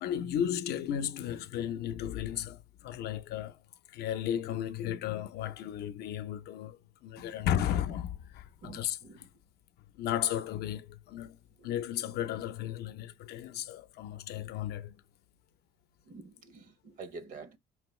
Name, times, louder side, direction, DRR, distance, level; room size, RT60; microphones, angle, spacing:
voice 1, 0.0-3.6 3.9-6.8 7.0-9.0 10.0-11.4 11.6-15.0, left 10 dB, 70° left, 0.5 m, -34 dB
voice 2, 8.6-9.2 11.6-11.7 16.1-17.6, right 4 dB, 50° right, 0.7 m, -47 dB
4.9 x 3.0 x 3.1 m
cardioid pair, 110°, 17 cm